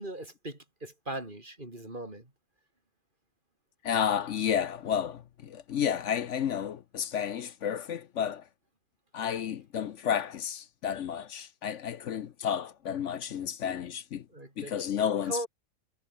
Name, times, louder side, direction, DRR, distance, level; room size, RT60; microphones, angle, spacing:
voice 1, 0.0-2.3 14.3-15.5, right 1 dB, 30° right, 4.5 m, -39 dB
voice 2, 3.8-8.5 9.1-14.2 14.6-15.5, left 8 dB, 60° left, 0.9 m, -31 dB
omnidirectional pair, 1.8 m